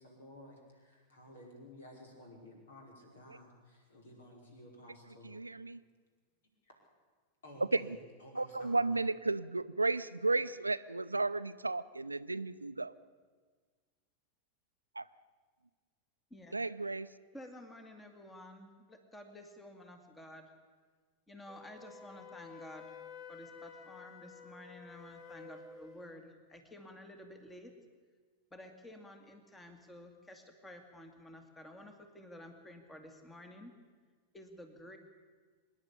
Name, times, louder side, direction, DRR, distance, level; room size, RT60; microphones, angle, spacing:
voice 1, 0.0-5.4 6.6-6.7 7.4-9.0, left 1 dB, 65° left, 2 dB, 5.2 m, -54 dB
voice 2, 5.2-5.8 7.7-8.0 8.3-12.9 15.0-15.1 16.5-17.1, right 3 dB, 80° right, 14 dB, 0.6 m, -33 dB
voice 3, 17.3-20.5 21.3-23.0 23.3-27.7 28.5-33.7 34.3-35.0, left 1 dB, 10° left, 6 dB, 2.1 m, -52 dB
Wind instrument woodwind instrument, 21.5-26.2, left 6 dB, 35° left, 1.6 m, -52 dB
24.5 x 10.5 x 10.0 m, 1.5 s
figure-of-eight pair, 90°, 0 cm